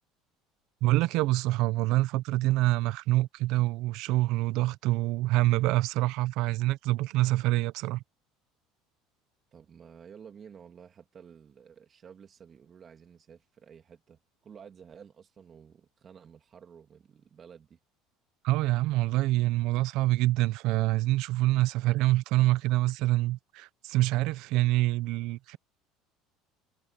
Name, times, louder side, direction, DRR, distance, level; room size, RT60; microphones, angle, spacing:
voice 1, 0.8-8.0 18.4-25.6, right 17 dB, 70° right, 0.8 m, -26 dB
voice 2, 9.5-17.8, right 7 dB, 35° right, 3.1 m, -52 dB
supercardioid pair, 100°, 0 cm